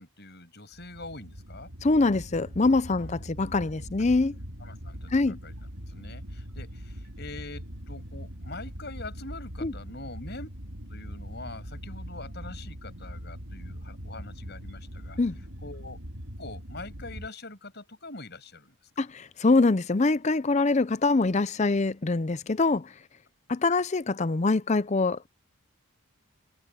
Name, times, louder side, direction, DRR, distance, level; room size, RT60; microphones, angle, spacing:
voice 1, 0.0-1.7 3.0-3.6 4.6-5.5 5.9-10.5 10.9-15.2 15.6-16.0 16.4-19.1 23.7-23.8, left 2 dB, 50° left, 7.6 m, -44 dB
sound 1, 0.7-17.3, equal, 80° right, 4.3 m, -41 dB
voice 2, 1.8-4.3 5.1-5.4 9.6-9.7 15.2-15.3 19.0-22.9 23.5-25.3, left 3 dB, 30° left, 0.5 m, -24 dB
head